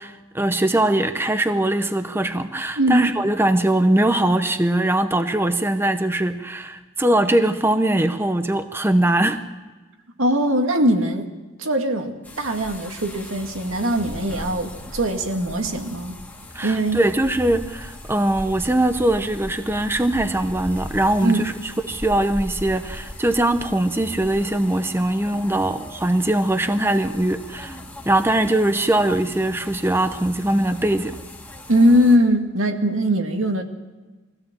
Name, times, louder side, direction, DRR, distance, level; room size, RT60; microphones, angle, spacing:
voice 1, 0.0-9.4 16.5-27.8 28.0-31.2, right 1 dB, 10° right, 9 dB, 0.7 m, -21 dB
voice 2, 2.8-3.1 10.2-11.3 11.6-16.1 16.6-17.0 21.2-21.4 31.7-33.6, equal, 85° right, 4 dB, 2.0 m, -20 dB
sound 1, 12.2-32.2, left 1 dB, 10° left, 1.9 m, -38 dB
22.0 x 16.0 x 7.5 m, 1.2 s
head